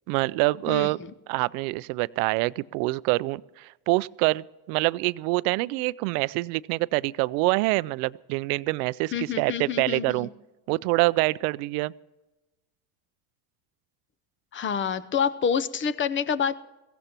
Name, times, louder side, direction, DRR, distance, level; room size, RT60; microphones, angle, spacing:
voice 1, 0.1-1.0 1.3-10.3 10.7-11.9, right 22 dB, 75° right, 19 dB, 0.6 m, -26 dB
voice 2, 9.1-10.3 14.5-16.6, left 7 dB, 25° left, 15 dB, 0.6 m, -27 dB
22.5 x 16.0 x 3.0 m, 1.1 s
supercardioid pair, 125°, 45 cm